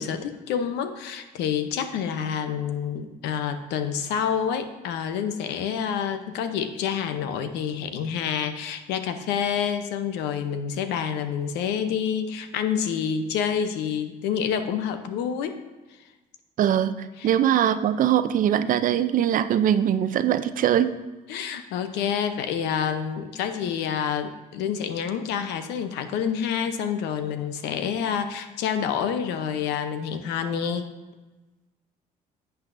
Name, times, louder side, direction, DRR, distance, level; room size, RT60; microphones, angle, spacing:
voice 1, 0.0-15.6 17.2-17.3 21.3-30.8, left 7 dB, 90° left, 9 dB, 0.8 m, -28 dB
voice 2, 16.6-21.0, right 10 dB, 55° right, 12 dB, 0.5 m, -22 dB
11.5 x 8.1 x 2.6 m, 1.2 s
cardioid pair, 110°, 17 cm